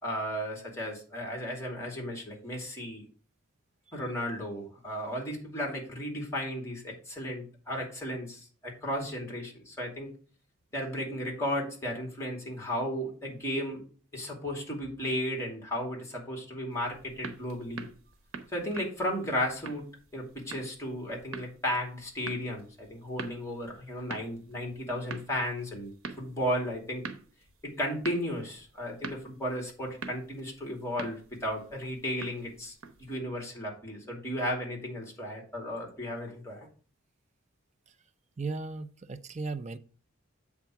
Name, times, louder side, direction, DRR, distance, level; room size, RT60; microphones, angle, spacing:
voice 1, 0.0-3.1 3.9-10.1 10.7-13.8 14.1-17.9 18.5-19.9 20.1-25.9 26.2-27.0 27.6-36.7, equal, 15° left, 2.3 m, -34 dB
sound 1, 16.7-33.2, right 4 dB, 75° right, 0.9 m, -46 dB
voice 2, 38.4-39.8, right 3 dB, 35° right, 0.5 m, -36 dB
8.1 x 3.6 x 5.9 m
head